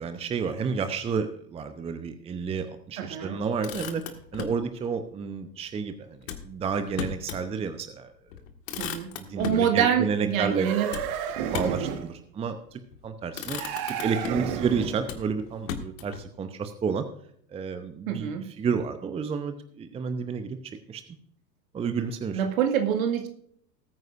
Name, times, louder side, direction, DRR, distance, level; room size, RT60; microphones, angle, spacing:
voice 1, 0.0-4.0 4.3-6.1 6.4-8.1 9.1-10.7 11.4-13.6 13.9-17.1 17.5-20.6 20.9-21.0 21.7-22.4, right 6 dB, 10° right, 9 dB, 0.8 m, -30 dB
voice 2, 3.0-3.4 8.8-9.1 9.4-10.9 11.6-12.0 18.1-18.5 22.3-23.3, right 8 dB, 55° right, 5 dB, 2.1 m, -26 dB
Motor vehicle (road), 3.4-4.6 6.2-7.5 7.9-8.0 8.3-9.7 10.9-11.9 12.7-13.0 13.3-14.6 15.0-16.2, left 7 dB, 50° left, 1.8 m, -37 dB
sound 1, 10.5-12.1 13.5-15.1, right 9 dB, 40° right, 1.5 m, -32 dB
19.5 x 9.1 x 2.6 m, 0.64 s
figure-of-eight pair, 90°, 50 cm